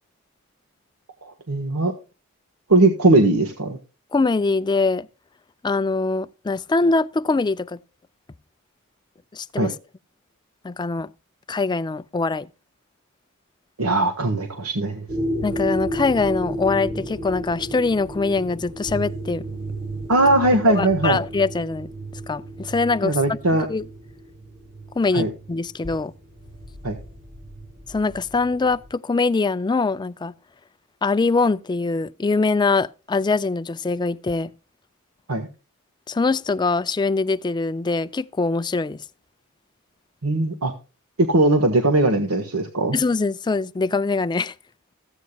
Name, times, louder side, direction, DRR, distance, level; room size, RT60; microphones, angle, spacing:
voice 1, 1.2-1.9 2.7-3.8 9.6-9.7 13.8-15.1 20.1-21.2 23.0-23.7 25.1-25.3 26.8-27.0 35.3-35.5 40.2-40.7 41.2-43.0, right 2 dB, 90° right, 1.3 m, -19 dB
voice 2, 4.1-5.1 5.6-7.8 9.3-9.7 10.6-11.1 11.5-12.5 15.4-19.4 20.7-21.9 22.3-23.4 23.7-23.9 25.0-26.1 27.9-30.3 31.0-34.5 36.1-39.0 42.9-44.5, left 3 dB, 20° left, 0.4 m, -23 dB
sound 1, 15.1-28.9, right 1 dB, 40° right, 2.5 m, -33 dB
15.0 x 8.3 x 2.3 m
head